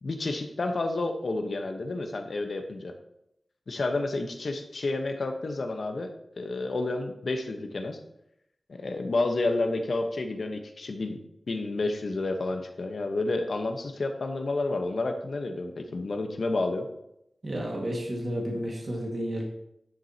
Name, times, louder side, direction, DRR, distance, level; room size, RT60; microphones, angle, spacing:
voice 1, 0.0-2.9 3.7-8.0 8.7-11.2 11.5-16.9, left 2 dB, 65° left, 5 dB, 1.0 m, -30 dB
voice 2, 17.4-19.4, equal, 45° right, -1 dB, 1.7 m, -31 dB
9.5 x 7.4 x 2.8 m, 0.80 s
wide cardioid pair, 95°, 0 cm